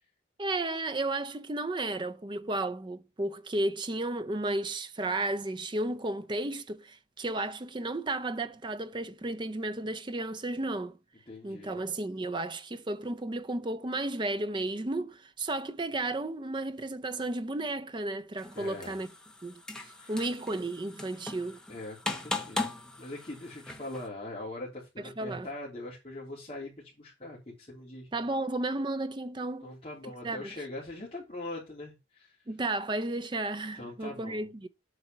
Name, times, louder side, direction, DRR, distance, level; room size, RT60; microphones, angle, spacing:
voice 1, 0.4-11.0 11.4-19.1 19.4-19.6 19.9-21.6 25.2-25.5 28.1-29.7 30.2-30.5 32.5-34.7, right 2 dB, 25° right, 0.5 m, -33 dB
voice 2, 11.3-11.8 18.5-19.0 20.0-20.2 21.7-28.1 29.6-32.4 33.7-34.5, left 2 dB, 30° left, 3.2 m, -42 dB
sound 1, 18.4-24.1, left 2 dB, 5° left, 1.1 m, -39 dB
8.1 x 4.4 x 7.2 m
head